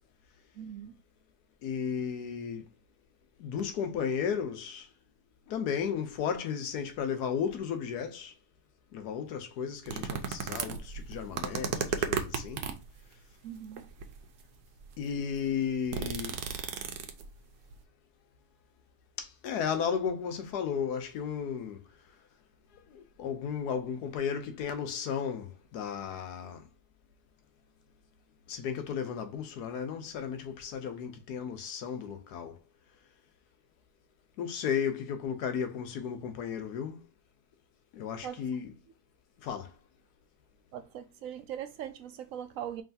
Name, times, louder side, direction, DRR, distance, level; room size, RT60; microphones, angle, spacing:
voice 1, 0.5-0.9 13.4-13.9 38.2-38.5 40.7-42.8, right 9 dB, 70° right, 0.9 m, -40 dB
voice 2, 1.6-2.6 3.4-4.9 5.5-8.3 8.9-12.7 15.0-16.4 19.2-21.8 22.9-26.6 28.5-32.6 34.4-37.0 37.9-38.7 39.4-39.7, left 7 dB, 80° left, 1.3 m, -34 dB
sound 1, 9.9-12.9 13.7-14.2 14.8-14.9 15.2-17.4 17.7-17.8, right 7 dB, 90° right, 1.3 m, -34 dB
4.8 x 3.1 x 2.5 m
omnidirectional pair, 1.7 m